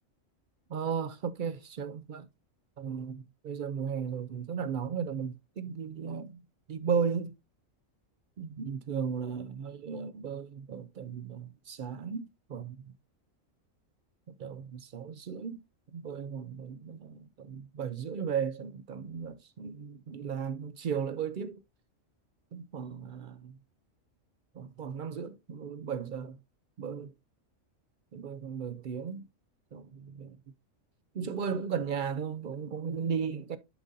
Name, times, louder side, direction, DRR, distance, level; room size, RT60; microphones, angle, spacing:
voice 1, 0.7-2.3 2.8-6.4 6.7-7.3 8.4-12.8 14.4-15.6 15.9-21.6 22.5-23.6 24.6-26.4 26.8-27.1 28.1-29.3 29.7-30.4 31.1-33.6, right 6 dB, 60° right, 0.5 m, -35 dB
11.0 x 3.8 x 2.6 m
omnidirectional pair, 1.4 m